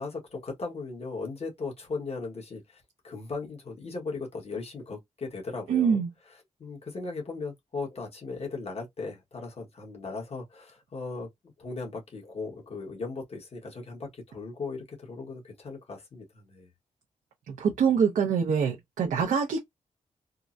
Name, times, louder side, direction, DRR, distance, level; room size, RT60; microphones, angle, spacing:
voice 1, 0.0-6.0 6.6-11.3 11.6-16.7, left 3 dB, 55° left, 1.4 m, -37 dB
voice 2, 5.7-6.1 17.5-19.6, right 6 dB, 90° right, 0.6 m, -25 dB
3.6 x 2.1 x 2.6 m
cardioid pair, 75°, 13 cm